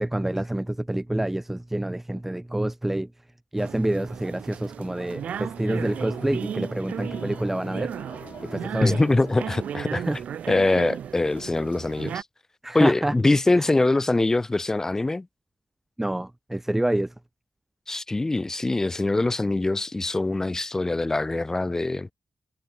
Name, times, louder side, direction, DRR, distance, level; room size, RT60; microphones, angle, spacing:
voice 1, 0.0-3.1 3.5-7.9 8.4-9.0 9.9-10.2 12.6-13.1 13.6-13.7 16.0-17.1, right 1 dB, 10° right, 1.7 m, -27 dB
sound 1, 3.6-12.2, right 9 dB, 90° right, 1.0 m, -35 dB
sound 2, 5.2-10.2, left 8 dB, 90° left, 2.8 m, -48 dB
voice 2, 8.8-10.0 10.5-12.2 12.7-15.3 17.9-22.1, left 2 dB, 20° left, 1.7 m, -23 dB
cardioid pair, 90°, 2 cm